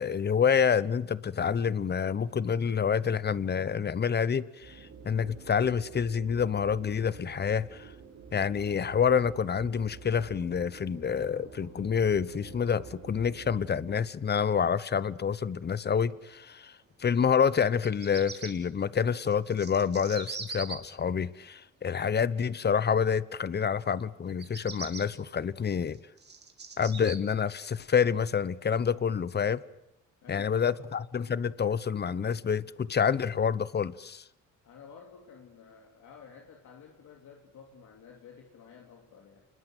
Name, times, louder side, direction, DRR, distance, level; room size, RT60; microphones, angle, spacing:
voice 1, 0.0-7.9 8.3-16.7 17.0-26.0 26.8-29.6 30.3-34.2, left 7 dB, 35° left, 0.9 m, -28 dB
sound 1, 4.6-13.9, right 6 dB, 60° right, 5.9 m, -48 dB
Bird vocalization bird call bird song, 17.7-18.5 19.3-20.8 24.3-25.0 25.7-27.2, right 4 dB, 35° right, 3.6 m, -40 dB
voice 2, 30.2-31.0 34.6-39.4, left 6 dB, 70° left, 3.1 m, -51 dB
28.0 x 21.0 x 8.1 m
cardioid pair, 90°, 30 cm